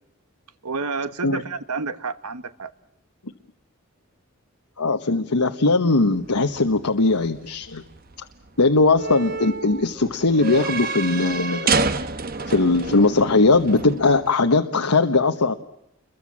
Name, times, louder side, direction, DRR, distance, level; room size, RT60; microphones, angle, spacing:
voice 1, 0.6-2.7, right 4 dB, 90° right, 12 dB, 1.3 m, -29 dB
voice 2, 4.8-7.8 8.6-11.7 12.5-15.5, left 3 dB, 90° left, 5 dB, 1.2 m, -19 dB
sound 1, 6.0-14.3, right 4 dB, 40° right, 1.1 m, -29 dB
29.5 x 23.0 x 7.4 m, 0.79 s
head